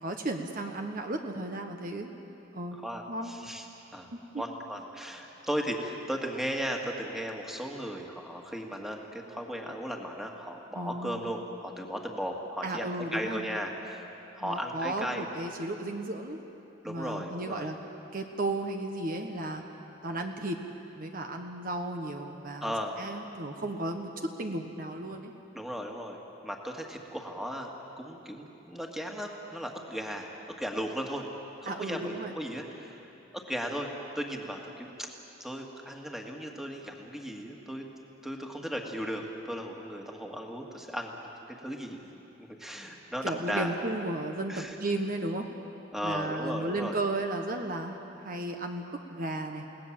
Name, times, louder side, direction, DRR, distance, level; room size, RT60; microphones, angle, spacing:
voice 1, 0.0-2.2 2.5-2.8 3.1-3.3 4.1-4.2 10.7-11.2 12.6-13.5 14.4-16.4 16.8-17.8 18.1-19.6 20.0-20.6 21.0-25.3 31.7-32.3 43.2-45.5 46.0-48.8 49.1-49.6, right 2 dB, 45° right, 4 dB, 1.3 m, -34 dB
voice 2, 2.7-3.7 3.9-4.1 4.4-14.1 14.3-15.2 16.8-17.7 22.6-23.0 25.5-26.2 26.4-27.7 28.0-30.3 30.6-31.3 31.6-35.1 35.4-37.9 38.2-42.1 42.4-43.8 44.5-44.8 45.9-47.0, equal, ahead, 1 dB, 1.9 m, -36 dB
29.5 x 18.0 x 7.5 m, 2.9 s
head